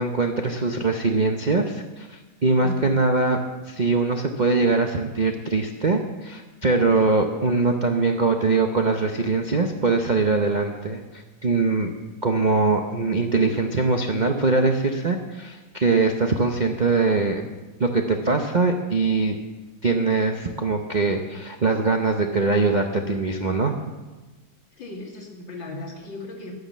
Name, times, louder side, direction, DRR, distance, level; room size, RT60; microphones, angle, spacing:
voice 1, 0.0-3.4 3.7-11.9 12.2-17.4 17.8-19.4 19.8-23.7, right 3 dB, 50° right, 3 dB, 0.5 m, -22 dB
voice 2, 24.7-26.5, left 1 dB, 80° left, -1 dB, 3.3 m, -36 dB
11.5 x 9.6 x 7.3 m, 1.2 s
omnidirectional pair, 2.0 m